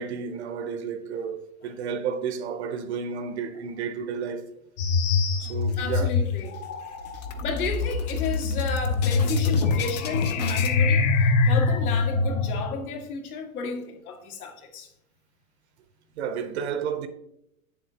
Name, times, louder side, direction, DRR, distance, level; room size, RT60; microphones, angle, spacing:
voice 1, 0.0-4.5 5.4-6.1 16.2-17.1, right 6 dB, 50° right, 0.7 m, -31 dB
sound 1, 4.8-12.6, left 4 dB, 55° left, 1.9 m, -24 dB
sound 2, 5.4-6.2 6.5-6.7 7.0-10.7, left 4 dB, 30° left, 0.4 m, -34 dB
voice 2, 5.7-6.6 7.4-14.9, left 5 dB, 75° left, 2.0 m, -33 dB
8.4 x 7.4 x 2.8 m
supercardioid pair, 165°, 44 cm